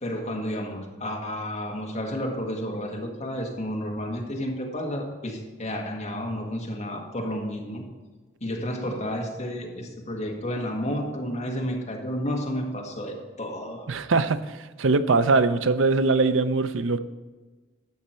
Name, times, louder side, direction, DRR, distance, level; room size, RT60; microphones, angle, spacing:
voice 1, 0.0-7.9 8.4-13.9, equal, 35° left, 0 dB, 1.7 m, -31 dB
voice 2, 13.9-14.4 14.8-17.0, right 3 dB, 75° right, 11 dB, 0.6 m, -21 dB
12.0 x 7.4 x 4.5 m, 1.3 s
head